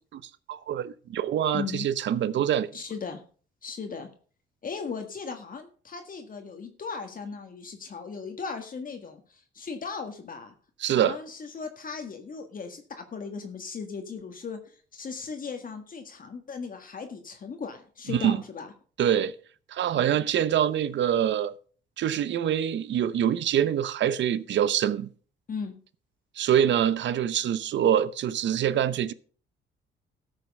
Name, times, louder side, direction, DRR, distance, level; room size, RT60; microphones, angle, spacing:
voice 1, 0.5-2.7 10.8-11.2 18.1-18.4 19.0-19.3 19.7-21.5 22.0-25.1 26.4-29.1, right 9 dB, 65° right, 0.8 m, -25 dB
voice 2, 1.5-1.9 2.7-3.2 3.6-4.1 4.6-10.5 10.9-18.7 20.0-20.2 25.5-25.8, left 5 dB, 45° left, 1.7 m, -37 dB
13.0 x 6.5 x 5.4 m
cardioid pair, 90°, 20 cm